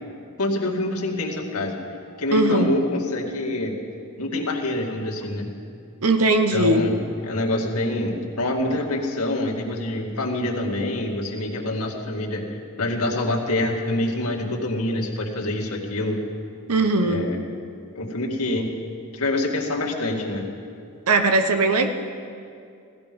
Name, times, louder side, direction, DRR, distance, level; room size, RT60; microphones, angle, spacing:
voice 1, 0.4-1.8 2.2-3.8 4.2-5.5 6.5-7.0 7.2-12.4 12.8-16.2 17.0-17.4 18.0-18.7 19.1-20.5, left 1 dB, 85° left, -2 dB, 2.2 m, -26 dB
voice 2, 2.3-2.7 6.0-6.8 16.7-17.3 21.1-21.9, right 2 dB, 85° right, 7 dB, 0.9 m, -19 dB
17.5 x 15.0 x 5.3 m, 2.4 s
head